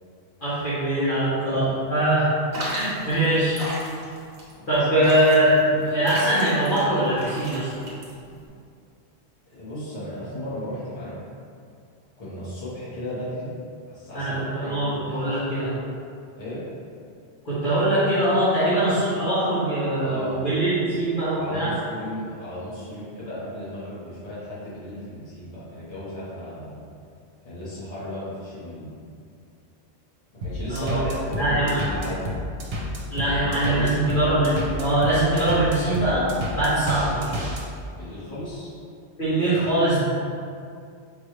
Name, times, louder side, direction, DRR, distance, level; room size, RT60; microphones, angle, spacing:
voice 1, 0.4-2.3 2.6-3.9 4.7-7.8 14.1-15.7 17.4-21.7 30.7-31.0 31.4-31.8 33.1-36.3 36.5-37.4 39.2-40.0, right 1 dB, 50° left, -14 dB, 1.3 m, -22 dB
sound 1, 2.5-8.5, right 1 dB, 40° right, 1.1 m, -34 dB
voice 2, 4.5-4.9 9.4-11.2 12.2-13.5 13.9-15.5 16.4-16.6 20.0-20.4 21.3-26.8 27.4-29.0 30.4-32.3 33.1-34.0 37.9-38.7, left 1 dB, 35° left, -11 dB, 1.5 m, -35 dB
sound 2, 30.4-37.6, left 1 dB, 70° right, 1.0 m, -30 dB
5.3 x 2.6 x 3.2 m, 2.3 s
omnidirectional pair, 1.1 m